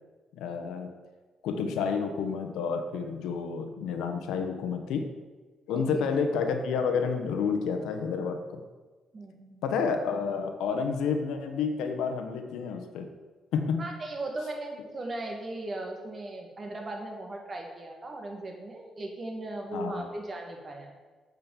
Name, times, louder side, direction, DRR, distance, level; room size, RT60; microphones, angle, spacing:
voice 1, 0.3-0.9 1.4-5.1 5.7-8.6 9.6-13.1 13.5-13.9 19.7-20.1, left 5 dB, 85° left, 6 dB, 1.0 m, -30 dB
voice 2, 5.7-6.1 9.1-9.6 13.8-20.9, right 2 dB, 35° right, 1 dB, 2.0 m, -38 dB
8.2 x 5.2 x 7.1 m, 1.3 s
cardioid pair, 90°, 0 cm